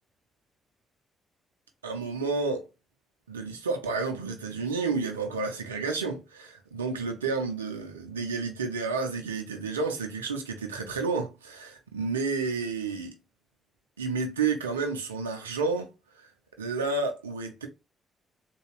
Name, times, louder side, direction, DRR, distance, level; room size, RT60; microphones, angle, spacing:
voice 1, 1.8-2.6 3.3-13.1 14.0-15.9 16.6-17.7, right 4 dB, 85° right, 0.6 m, -30 dB
3.8 x 2.3 x 3.1 m
figure-of-eight pair, 40°, 0 cm